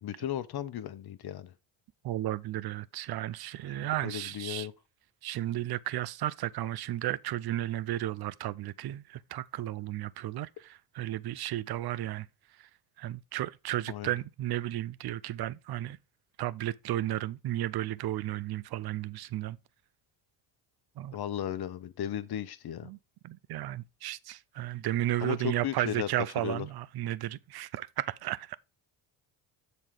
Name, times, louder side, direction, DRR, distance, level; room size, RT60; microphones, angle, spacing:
voice 1, 0.0-1.5 4.0-4.7 13.9-14.1 21.1-22.9 25.2-26.1 26.4-26.7, left 10 dB, 50° left, 1.0 m, -35 dB
voice 2, 2.0-4.7 5.2-12.3 13.0-16.0 16.4-19.6 21.0-21.2 22.8-23.0 23.2-28.6, right 14 dB, 50° right, 0.6 m, -33 dB
7.2 x 4.1 x 5.0 m
supercardioid pair, 65°, 49 cm